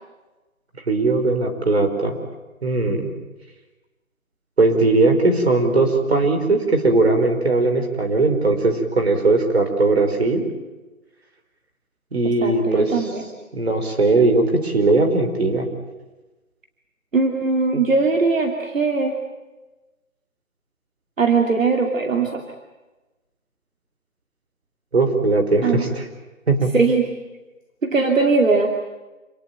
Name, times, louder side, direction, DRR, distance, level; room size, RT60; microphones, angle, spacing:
voice 1, 0.9-2.2 2.6-3.1 4.6-10.5 12.1-13.1 13.5-15.7 24.9-26.1 26.5-26.7, right 3 dB, 50° right, 5 dB, 4.6 m, -19 dB
voice 2, 12.2-13.2 17.1-19.2 21.2-22.4 25.6-25.8 26.7-27.1 27.8-28.7, right 4 dB, 65° right, 3 dB, 2.8 m, -20 dB
28.0 x 19.0 x 9.1 m, 1.1 s
figure-of-eight pair, 175°, 42 cm